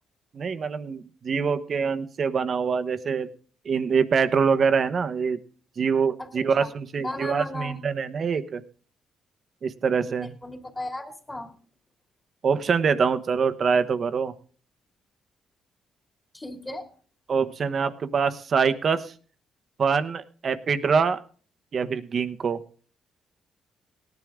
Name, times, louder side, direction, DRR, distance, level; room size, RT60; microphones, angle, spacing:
voice 1, 0.3-3.3 3.6-5.4 5.8-8.6 9.6-10.4 12.4-14.3 17.3-19.1 19.8-21.2 21.7-22.6, right 6 dB, 50° right, 11 dB, 1.1 m, -24 dB
voice 2, 7.0-7.8 10.0-11.5 16.3-16.9, left 1 dB, 20° left, 5 dB, 2.7 m, -36 dB
18.0 x 10.5 x 3.7 m, 0.42 s
cardioid pair, 90°, 0 cm